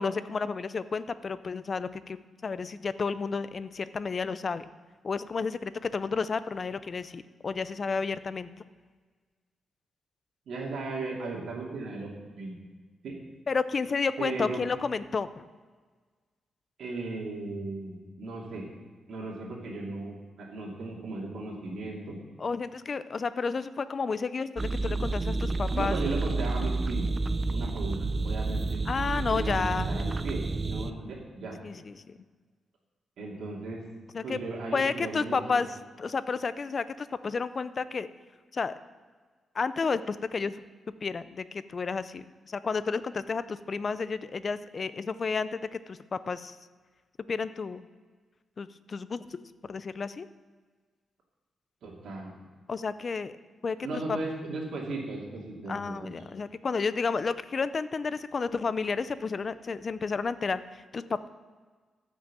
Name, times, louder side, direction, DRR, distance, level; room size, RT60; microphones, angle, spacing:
voice 1, 0.0-2.2 2.4-4.7 5.0-8.5 13.5-15.4 22.4-26.0 28.9-30.0 31.6-32.2 34.1-34.4 34.7-35.7 36.0-38.1 38.5-38.7 39.5-40.5 41.0-46.6 47.3-47.8 48.6-49.4 49.7-50.3 52.7-53.3 53.6-53.8 54.1-54.2 55.7-61.3, left 4 dB, 40° left, 14 dB, 0.5 m, -31 dB
voice 2, 10.5-12.1 12.4-12.5 13.0-13.2 14.2-14.6 16.8-18.7 19.1-22.2 25.7-27.1 27.5-28.8 29.3-31.6 33.2-33.8 34.2-35.6 51.8-52.3 53.8-55.7, right 3 dB, 75° right, -3 dB, 2.6 m, -36 dB
sound 1, 24.6-30.9, right 3 dB, 25° right, 0.5 m, -30 dB
14.0 x 6.2 x 7.4 m, 1.5 s
wide cardioid pair, 130°, 0 cm